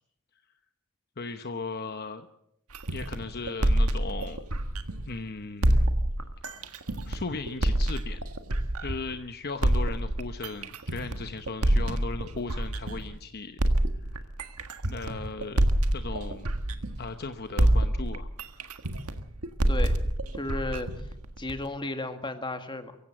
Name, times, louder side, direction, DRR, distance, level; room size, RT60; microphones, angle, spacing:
voice 1, 1.2-2.3 2.9-4.4 5.1-5.9 6.5-6.7 7.0-8.2 8.8-13.6 14.0-14.3 14.9-15.7 15.9-16.5 17.0-18.3, left 3 dB, 45° left, 8 dB, 0.9 m, -37 dB
sound 1, 2.7-5.2 5.6-9.1 9.6-13.2 13.6-17.3 17.6-21.7, right 1 dB, 85° right, 1.6 m, -27 dB
voice 2, 19.7-20.0 20.3-20.9 21.4-23.0, left 2 dB, 20° left, 8 dB, 1.8 m, -34 dB
24.0 x 15.5 x 7.7 m, 0.76 s
head